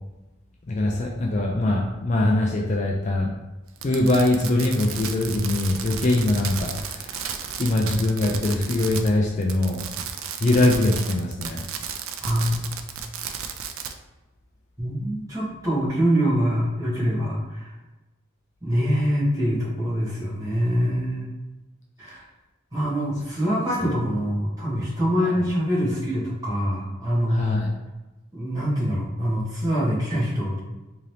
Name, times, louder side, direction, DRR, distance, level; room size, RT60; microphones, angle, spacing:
voice 1, 0.7-3.3 3.8-7.2 7.6-9.8 10.4-11.6 23.8-23.9 25.2-25.3 27.3-27.7, left 2 dB, 35° left, 0 dB, 0.3 m, -22 dB
Fireworks, 3.8-9.2 9.4-13.9, right 7 dB, 70° right, 0.4 m, -33 dB
voice 2, 12.2-12.6 14.8-17.7 18.6-21.3 22.0-22.2 22.7-27.6 28.3-30.6, equal, 15° right, -7 dB, 1.3 m, -24 dB
3.8 x 2.8 x 3.2 m, 1.1 s
head